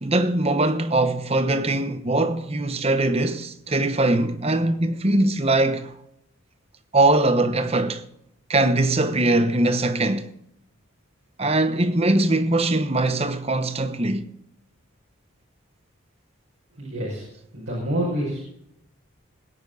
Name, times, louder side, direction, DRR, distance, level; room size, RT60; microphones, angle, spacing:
voice 1, 0.0-5.9 6.9-8.0 8.5-10.3 11.4-14.3, right 2 dB, 30° right, 0.9 m, -21 dB
voice 2, 16.8-17.2 17.5-18.4, right 1 dB, 70° right, 5.7 m, -27 dB
21.5 x 9.6 x 4.0 m
head